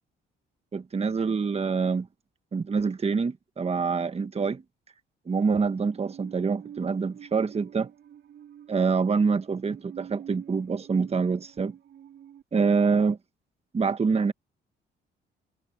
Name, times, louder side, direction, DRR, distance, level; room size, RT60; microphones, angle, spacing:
voice 1, 0.7-2.1 2.5-4.6 5.3-7.9 8.7-11.7 12.5-13.2 13.7-14.3, right 5 dB, 30° right, 1.4 m, -26 dB
Musical instrument, 5.6-12.4, right 10 dB, 65° right, 4.2 m, -47 dB
cardioid pair, 90°, 20 cm